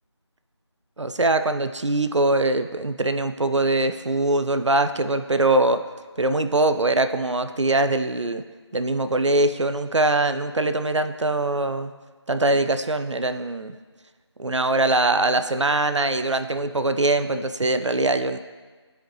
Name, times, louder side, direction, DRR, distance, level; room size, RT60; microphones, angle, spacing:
voice 1, 1.0-5.8 6.2-8.4 8.7-11.9 12.3-13.7 14.4-18.4, right 2 dB, 85° right, 9 dB, 0.5 m, -22 dB
12.0 x 5.0 x 3.1 m, 1.4 s
figure-of-eight pair, 170°, 15 cm